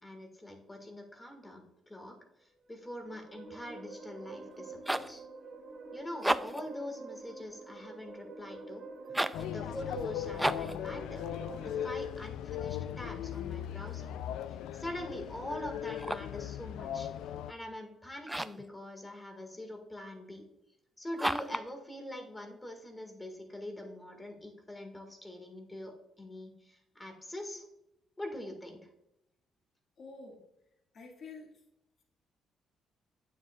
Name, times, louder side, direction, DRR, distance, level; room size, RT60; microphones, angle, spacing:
voice 1, 0.0-5.2 5.9-8.9 9.4-14.1 14.7-17.1 17.5-20.4 21.0-27.6 28.2-28.8, left 1 dB, 15° left, 4 dB, 1.7 m, -44 dB
sound 1, 2.6-12.0, right 3 dB, 65° right, 2.4 m, -48 dB
sound 2, 4.5-5.2 6.1-6.7 9.1-9.5 10.4-10.8 15.8-16.4 18.2-18.7 21.2-21.7, right 1 dB, 10° right, 0.3 m, -33 dB
sound 3, 9.3-17.5, left 10 dB, 90° left, 0.3 m, -38 dB
voice 2, 30.0-30.4 30.9-31.5, left 4 dB, 55° left, 1 dB, 1.8 m, -48 dB
8.9 x 7.2 x 2.3 m, 0.83 s
cardioid pair, 90°, 0 cm